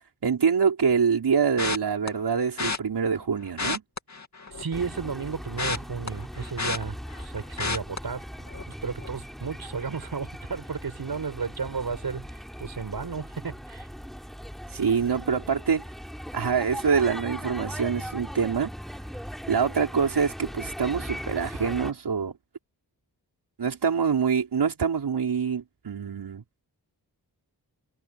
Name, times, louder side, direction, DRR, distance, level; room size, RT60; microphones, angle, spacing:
voice 1, 0.2-3.8 14.7-15.8 16.3-18.7 19.5-22.3 23.6-26.4, right 6 dB, 85° right, 5.3 m, -25 dB
sound 1, 1.6-2.1 2.6-2.8 3.5-4.7 5.0-7.3 7.6-8.0 8.5-8.7 9.0-9.1, left 4 dB, 45° left, 2.6 m, -31 dB
voice 2, 4.5-8.2 8.6-13.9, right 5 dB, 65° right, 6.8 m, -33 dB
sound 2, 4.7-21.9, equal, ahead, 6.6 m, -39 dB
wide cardioid pair, 90°, 39 cm